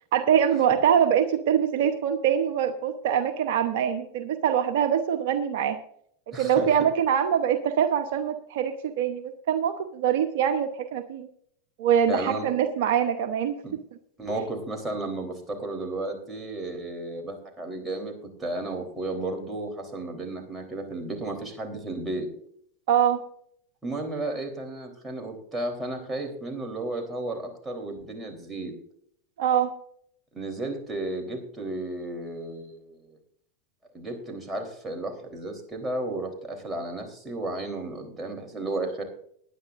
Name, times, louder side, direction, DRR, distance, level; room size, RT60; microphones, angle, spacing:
voice 1, 0.1-5.8 6.4-11.3 11.8-13.6 22.9-23.2 29.4-29.7, right 8 dB, 65° right, 8 dB, 0.9 m, -24 dB
voice 2, 6.3-6.7 12.1-12.5 13.6-13.7 14.2-18.1 18.4-22.3 23.8-28.7 30.3-33.2 33.9-39.0, right 2 dB, 15° right, 2 dB, 3.5 m, -33 dB
19.5 x 10.0 x 2.5 m, 0.67 s
hypercardioid pair, 90°, 0 cm